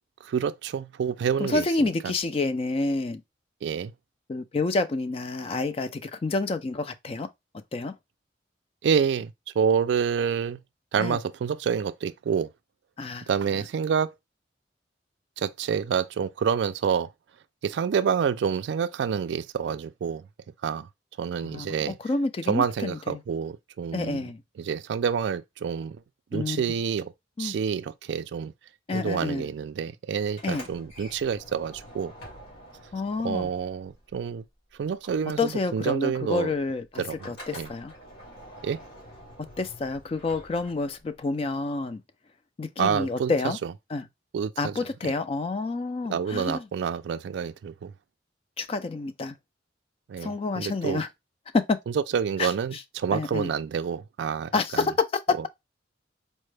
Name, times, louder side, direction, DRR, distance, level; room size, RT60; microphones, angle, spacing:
voice 1, 0.2-2.1 3.6-3.9 8.8-10.6 10.9-12.5 13.3-14.1 15.4-17.1 17.6-20.3 20.6-20.9 21.2-22.0 22.4-24.2 24.6-26.0 26.3-27.1 27.4-28.5 28.9-32.1 33.2-34.4 34.8-36.5 37.0-37.7 38.6-38.8 42.8-43.7 44.3-44.8 46.1-47.9 50.1-51.0 51.9-54.9, right 7 dB, 70° right, 0.3 m, -28 dB
voice 2, 1.4-3.2 4.3-7.3 7.7-7.9 11.0-11.2 13.0-13.3 21.4-23.2 23.9-24.4 26.3-26.6 27.4-27.5 28.9-29.5 30.4-30.7 32.9-33.5 35.4-37.9 39.6-42.0 42.6-43.6 43.9-44.1 44.6-46.6 48.6-49.4 50.2-51.1 51.5-51.8 52.4-52.5 53.1-53.5 54.5-54.9, left 3 dB, 30° left, 0.3 m, -28 dB
Sliding door, 30.3-34.5 34.8-41.2, equal, 70° left, 2.1 m, -47 dB
4.2 x 2.2 x 3.2 m
head